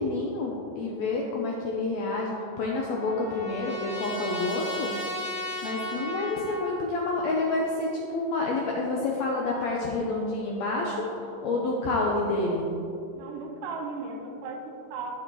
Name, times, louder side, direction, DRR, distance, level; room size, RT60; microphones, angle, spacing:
voice 1, 0.0-4.9 5.6-12.7, left 2 dB, 85° left, -1 dB, 1.5 m, -28 dB
Trumpet, 2.1-6.8, left 1 dB, 10° right, 0.5 m, -36 dB
voice 2, 13.1-15.1, right 4 dB, 75° right, 2 dB, 2.4 m, -36 dB
10.5 x 7.0 x 3.1 m, 2.7 s
omnidirectional pair, 4.0 m